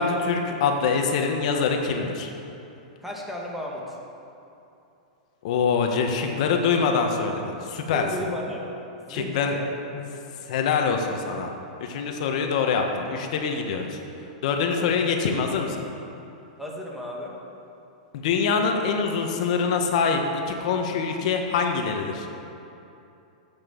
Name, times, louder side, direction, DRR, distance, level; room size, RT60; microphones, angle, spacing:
voice 1, 0.0-2.3 5.4-8.1 9.1-9.5 10.4-11.5 11.8-14.0 14.4-15.8 18.1-20.2 20.5-22.3, left 5 dB, 55° left, 3 dB, 1.4 m, -24 dB
voice 2, 3.0-4.0 7.9-8.7 9.0-9.7 14.7-15.0 16.6-17.4, equal, 5° right, -3 dB, 1.8 m, -34 dB
10.5 x 8.3 x 7.1 m, 2.8 s
hypercardioid pair, 140°, 4 cm